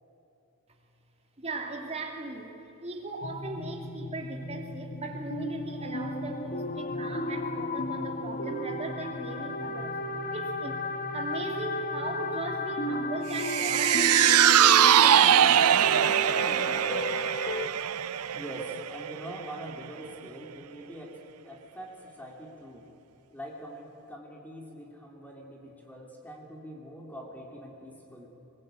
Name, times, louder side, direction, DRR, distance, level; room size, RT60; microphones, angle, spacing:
voice 1, 1.4-10.0 10.3-10.8 11.1-17.5, right 2 dB, 30° right, 2 dB, 2.8 m, -38 dB
sound 1, 3.2-17.7, left 2 dB, 40° left, 1.2 m, -34 dB
sound 2, 13.3-19.8 20.1-20.2, right 10 dB, 85° right, 0.5 m, -22 dB
voice 2, 18.3-21.2 21.4-22.9 23.3-28.3, equal, 5° left, 0 dB, 2.9 m, -43 dB
21.5 x 21.0 x 9.0 m, 2.9 s
head